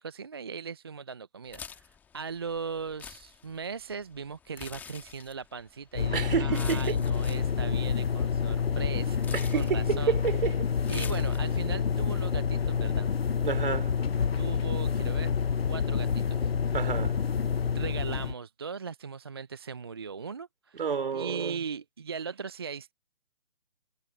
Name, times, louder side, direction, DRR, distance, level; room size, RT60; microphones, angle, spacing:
voice 1, 0.0-9.3 9.5-10.1 10.9-13.1 14.3-15.3 15.7-16.5 17.7-20.8 21.1-22.9, right 5 dB, 20° right, 0.7 m, -39 dB
sound 1, 1.5-11.8, left 7 dB, 5° left, 1.6 m, -48 dB
sound 2, 5.9-18.3, left 6 dB, 50° left, 0.8 m, -28 dB
voice 2, 6.1-7.0 9.3-10.7 13.4-14.0 16.7-17.2 20.7-21.6, right 6 dB, 45° right, 3.2 m, -30 dB
figure-of-eight pair, 150°, 38 cm